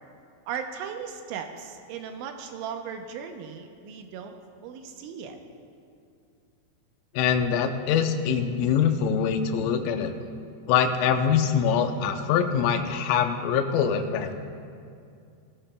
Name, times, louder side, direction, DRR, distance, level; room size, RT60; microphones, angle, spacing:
voice 1, 0.5-4.3 4.6-5.4, right 7 dB, 80° right, 5 dB, 3.1 m, -37 dB
voice 2, 7.1-10.1 10.7-14.3, left 7 dB, 85° left, 7 dB, 3.3 m, -24 dB
20.0 x 14.5 x 2.2 m, 2.4 s
omnidirectional pair, 5.5 m